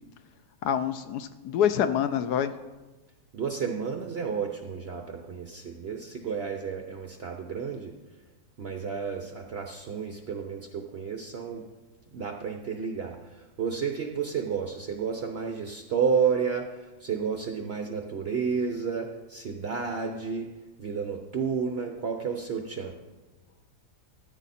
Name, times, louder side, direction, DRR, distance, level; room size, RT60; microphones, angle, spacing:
voice 1, 0.6-2.5, left 9 dB, 70° left, 11 dB, 1.0 m, -26 dB
voice 2, 3.3-7.9 8.6-11.6 12.1-20.5 20.8-23.0, right 6 dB, 60° right, 4 dB, 0.6 m, -31 dB
14.0 x 8.4 x 4.2 m, 1.2 s
omnidirectional pair, 2.0 m